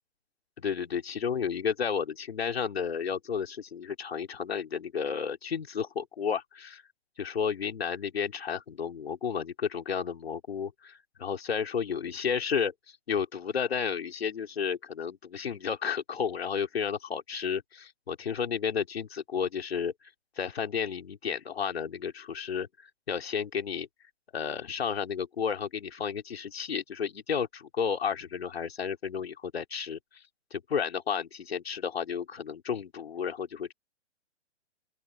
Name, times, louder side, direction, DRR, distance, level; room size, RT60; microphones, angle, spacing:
voice 1, 0.6-6.8 7.2-12.7 13.1-19.9 20.4-23.9 24.3-30.0 30.5-33.7, left 7 dB, 60° left, 3.2 m, -32 dB
open air
hypercardioid pair, 180°, 35 cm